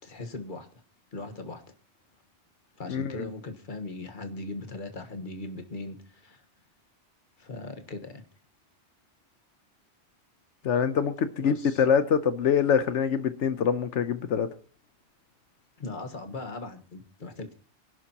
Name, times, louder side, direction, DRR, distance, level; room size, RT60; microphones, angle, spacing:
voice 1, 0.0-0.7 1.1-1.6 2.8-6.4 7.4-8.2 11.4-11.8 15.8-17.5, left 2 dB, 45° left, 6 dB, 1.6 m, -39 dB
voice 2, 10.6-14.5, left 7 dB, 85° left, 11 dB, 1.1 m, -24 dB
25.0 x 11.0 x 2.9 m, 0.40 s
omnidirectional pair, 1.2 m